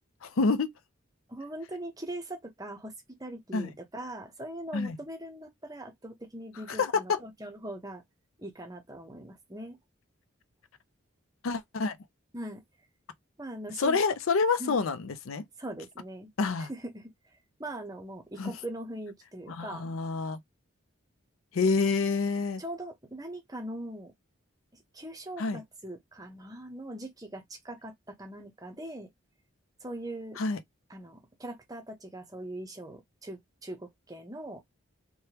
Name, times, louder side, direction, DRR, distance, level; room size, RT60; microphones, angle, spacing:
voice 1, 0.2-0.7 3.5-3.7 4.7-5.0 6.7-7.2 11.4-12.0 13.8-15.4 16.4-16.7 18.4-18.5 19.5-20.4 21.5-22.6 25.4-25.6 30.4-30.6, left 4 dB, 85° left, 0.5 m, -27 dB
voice 2, 1.3-8.0 8.4-9.8 12.3-12.6 13.4-14.0 14.6-14.8 15.6-16.3 16.7-17.1 17.6-19.9 21.7-21.9 22.6-24.1 24.7-27.9 28.2-29.1 29.8-30.4 30.9-34.6, right 1 dB, 15° right, 0.7 m, -41 dB
3.3 x 2.2 x 2.9 m
head